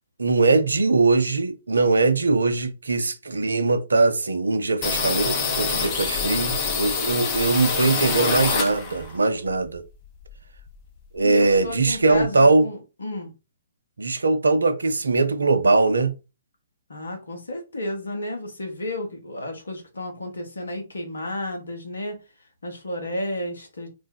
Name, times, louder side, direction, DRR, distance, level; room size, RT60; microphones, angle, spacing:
voice 1, 0.2-9.8 11.1-12.7 14.0-16.2, right 3 dB, 75° right, 0.5 m, -21 dB
sound 1, 4.8-9.2 9.5-10.9 11.2-11.3 11.5-12.2, left 5 dB, 30° left, 0.7 m, -26 dB
voice 2, 11.2-13.3 16.9-22.2 22.6-23.9, left 1 dB, 75° left, 1.1 m, -32 dB
2.6 x 2.1 x 3.8 m
figure-of-eight pair, 125°, 0 cm